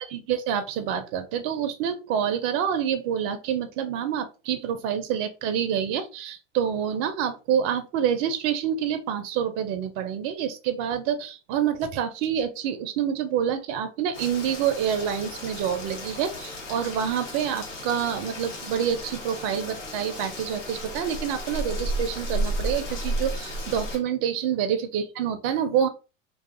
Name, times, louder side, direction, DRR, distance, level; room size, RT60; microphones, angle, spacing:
voice 1, 0.1-25.9, right 8 dB, 40° right, 9 dB, 0.4 m, -27 dB
Rain, 14.1-24.0, equal, 75° left, 1.1 m, -33 dB
2.4 x 2.4 x 2.4 m, 0.31 s
hypercardioid pair, 95°, 37 cm